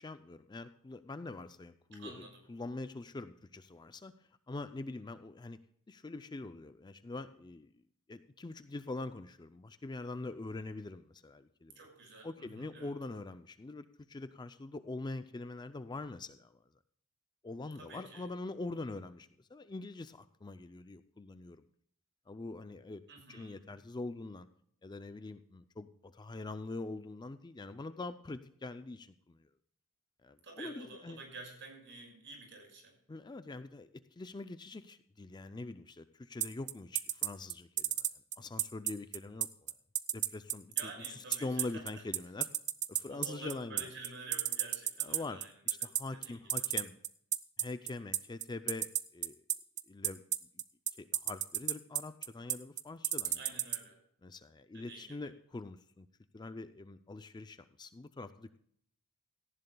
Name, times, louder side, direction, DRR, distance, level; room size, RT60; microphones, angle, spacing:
voice 1, 0.0-4.1 4.5-5.6 5.9-7.7 8.1-11.8 12.2-16.6 17.4-21.6 22.3-23.0 23.3-24.5 24.8-29.5 30.2-31.2 33.1-37.9 38.4-39.7 40.1-40.9 41.4-42.5 42.9-43.9 45.0-45.4 45.7-47.0 47.6-49.4 49.9-50.2 51.0-53.4 54.2-56.1 56.3-58.6, left 2 dB, 20° left, 11 dB, 0.4 m, -44 dB
voice 2, 1.9-2.4 11.7-12.9 17.8-18.3 23.1-23.7 30.4-33.0 40.7-42.0 43.0-45.5 45.8-46.4 53.3-54.0 54.7-55.3, right 3 dB, 55° right, 2 dB, 5.8 m, -50 dB
sound 1, 36.4-53.8, right 11 dB, 30° right, 0.5 m, -32 dB
17.5 x 14.5 x 2.3 m, 0.66 s
head